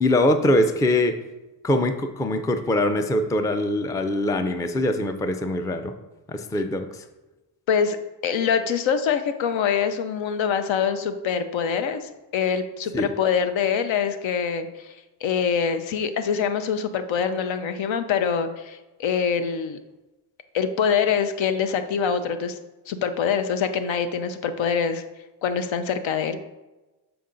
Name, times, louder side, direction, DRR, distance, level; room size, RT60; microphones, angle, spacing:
voice 1, 0.0-1.1 1.6-5.9 6.3-7.1 12.9-13.1, left 1 dB, 10° left, 7 dB, 0.3 m, -23 dB
voice 2, 8.2-14.9 15.2-19.8 20.5-22.6 22.9-25.0 25.4-26.4, left 7 dB, 75° left, 10 dB, 0.7 m, -24 dB
7.0 x 4.6 x 3.8 m, 1.1 s
cardioid pair, 115°, 46 cm